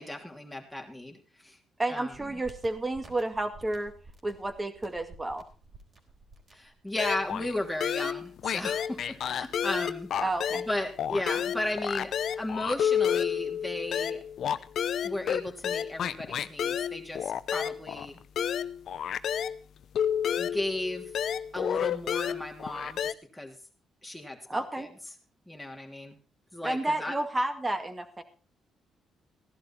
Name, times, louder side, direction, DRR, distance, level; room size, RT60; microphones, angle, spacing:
voice 1, 0.0-1.6 1.9-2.1 6.5-10.1 10.5-14.2 15.0-18.2 20.4-21.1 21.5-23.6 24.0-24.9 25.5-26.2 26.5-27.2, left 1 dB, ahead, 1 dB, 3.1 m, -35 dB
voice 2, 1.8-3.9 4.2-5.4 10.2-10.6 24.5-24.9 26.6-28.2, right 2 dB, 20° right, 8 dB, 1.9 m, -31 dB
sound 1, 2.1-7.6, right 3 dB, 40° right, 4.1 m, -52 dB
sound 2, 7.0-7.5 7.8-10.7 11.0-19.6 19.9-23.1, left 9 dB, 65° left, 0.6 m, -30 dB
15.5 x 11.5 x 4.3 m, 0.37 s
cardioid pair, 90°, 0 cm